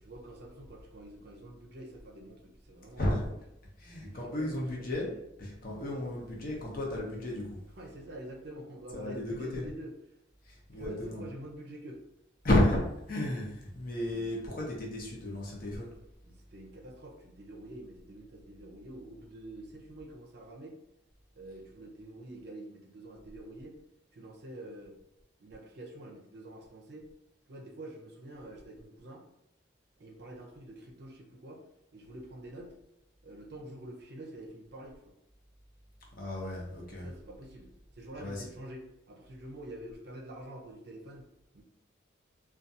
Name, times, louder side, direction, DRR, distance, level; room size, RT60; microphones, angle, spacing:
voice 1, 0.0-3.2 4.0-4.5 4.7-5.2 7.8-9.9 10.7-12.0 14.0-14.4 16.2-20.8 21.3-23.8 24.1-25.0 25.4-27.1 27.5-29.2 30.0-31.6 31.9-32.7 33.2-35.1 36.4-41.3 41.5-41.6, right 1 dB, 55° right, 2 dB, 0.5 m, -47 dB
voice 2, 3.0-3.4 3.8-5.1 5.4-7.6 8.9-9.6 10.4-11.2 12.4-12.8 13.1-15.9 36.2-37.1 38.2-38.5, left 1 dB, 45° left, -2 dB, 0.7 m, -32 dB
2.5 x 2.3 x 2.6 m, 0.83 s
head